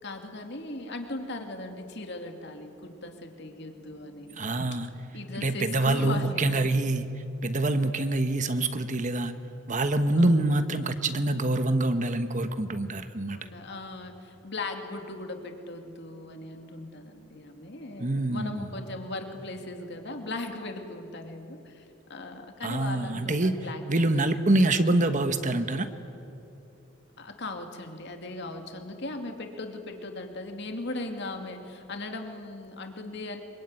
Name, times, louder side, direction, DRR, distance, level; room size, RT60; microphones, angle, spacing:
voice 1, 0.0-4.5 5.1-6.7 10.2-10.6 13.3-24.5 24.9-25.0 27.2-33.4, left 2 dB, 55° left, 4 dB, 2.6 m, -38 dB
voice 2, 4.4-4.9 5.4-7.1 7.4-9.3 9.7-13.4 18.0-18.7 22.6-23.6 23.9-25.9, right 2 dB, 40° right, 9 dB, 1.3 m, -25 dB
26.0 x 23.0 x 9.7 m, 2.8 s
head